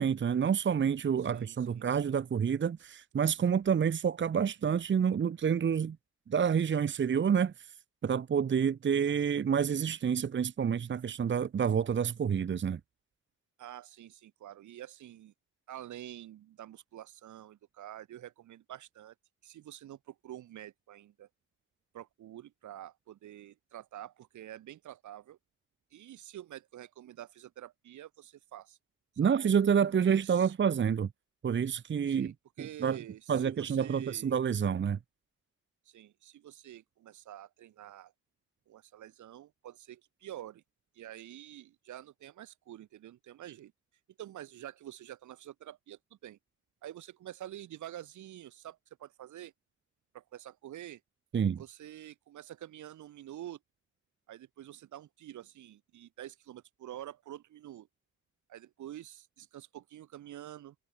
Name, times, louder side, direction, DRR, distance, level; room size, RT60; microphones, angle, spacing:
voice 1, 0.0-6.0 6.3-7.7 8.0-12.8 29.2-31.1 31.4-32.3 32.6-33.0 33.3-35.0 51.3-51.6, right 7 dB, 40° right, 1.1 m, -28 dB
voice 2, 1.2-1.9 13.6-15.3 15.7-19.1 19.4-21.3 21.9-25.4 25.9-28.8 29.2-29.3 30.0-30.5 32.1-34.3 35.8-38.1 38.7-40.6 40.9-43.7 44.2-46.4 46.8-49.5 50.1-51.0 51.5-53.6 54.3-57.9 58.5-60.7, right 12 dB, 75° right, 3.3 m, -47 dB
cardioid pair, 90°, 30 cm